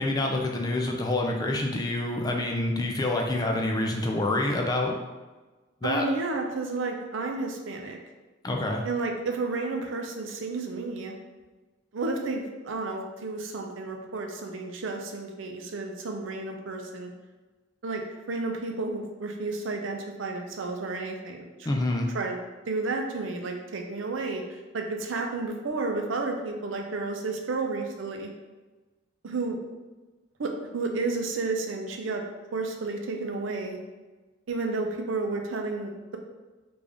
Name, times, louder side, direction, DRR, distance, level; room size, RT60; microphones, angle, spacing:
voice 1, 0.0-4.9 5.8-6.0 8.4-8.8 21.7-22.1, left 2 dB, 20° left, 1 dB, 0.3 m, -27 dB
voice 2, 5.8-8.0 8.8-11.1 11.9-17.1 17.8-21.7 22.1-22.4 22.7-28.3 29.2-29.6 30.4-32.2 32.5-33.8 34.5-36.2, right 3 dB, 75° right, 3 dB, 0.5 m, -31 dB
3.5 x 2.5 x 3.4 m, 1.2 s
head